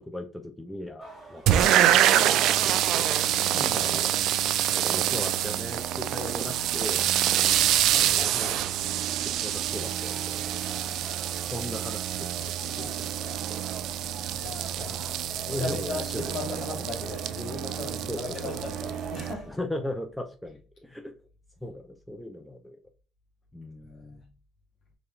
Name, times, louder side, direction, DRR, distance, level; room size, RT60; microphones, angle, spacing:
voice 1, 0.0-2.6 2.9-3.2 3.7-4.1 4.7-7.1 7.9-8.6 9.0-10.6 11.5-13.7 14.8-16.7 17.9-18.6 19.4-21.1 21.6-22.8 23.5-24.3, left 1 dB, 5° left, 0.5 m, -38 dB
sound 1, 1.0-19.6, right 2 dB, 20° right, 2.0 m, -47 dB
sound 2, 1.5-19.3, right 11 dB, 70° right, 0.3 m, -26 dB
voice 2, 7.8-8.6 14.4-15.0 15.5-19.5 23.9-24.0, left 3 dB, 45° left, 1.0 m, -38 dB
5.0 x 3.2 x 2.3 m
cardioid pair, 100°, 0 cm